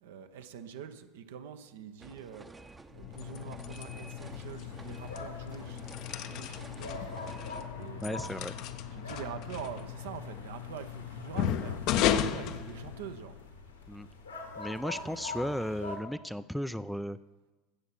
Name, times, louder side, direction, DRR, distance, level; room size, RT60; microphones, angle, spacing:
voice 1, 0.0-2.5 2.9-5.8 6.2-7.1 7.7-8.3 8.9-13.3 14.9-15.2, right 9 dB, 65° right, 9 dB, 0.8 m, -45 dB
sound 1, 2.0-7.7, right 2 dB, 15° right, 0.8 m, -51 dB
sound 2, 2.9-13.4, left 10 dB, 50° left, 0.6 m, -35 dB
sound 3, 3.9-16.0, left 3 dB, 80° left, 1.8 m, -45 dB
voice 2, 8.0-8.5 13.9-14.1 14.6-17.2, equal, ahead, 13 dB, 0.4 m, -35 dB
15.5 x 7.4 x 6.1 m, 1.2 s
figure-of-eight pair, 70°, 0 cm